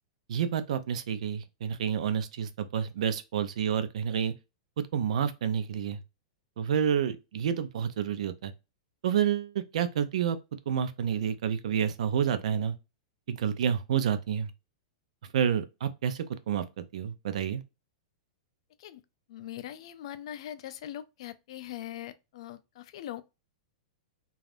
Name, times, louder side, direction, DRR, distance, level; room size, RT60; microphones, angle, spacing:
voice 1, 0.3-4.3 4.9-6.0 6.6-8.5 9.0-10.4 10.7-12.7 13.3-14.5 15.3-17.6, right 8 dB, 70° right, 0.4 m, -29 dB
voice 2, 19.3-23.2, left 12 dB, 55° left, 0.4 m, -41 dB
3.3 x 2.3 x 2.5 m
supercardioid pair, 170°, 4 cm